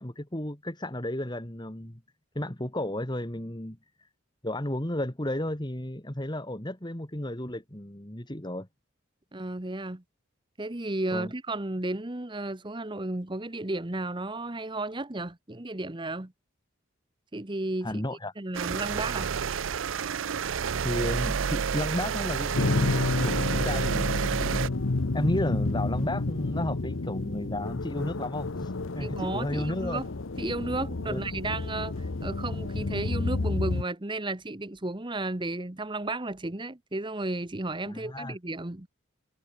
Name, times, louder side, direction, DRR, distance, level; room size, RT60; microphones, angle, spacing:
voice 1, 0.0-2.0 2.3-4.1 4.4-8.7 11.1-11.3 17.8-18.3 20.8-22.9 23.2-24.5 25.1-30.0 31.1-31.2 37.9-38.4, left 1 dB, 20° left, 2.4 m, -33 dB
voice 2, 9.3-10.0 10.6-16.3 17.3-18.0 18.4-19.3 29.0-30.1 30.4-38.9, right 2 dB, 25° right, 1.1 m, -33 dB
sound 1, 18.5-24.7, right 6 dB, 70° right, 0.5 m, -29 dB
sound 2, 22.5-33.8, left 2 dB, 70° left, 0.9 m, -30 dB
head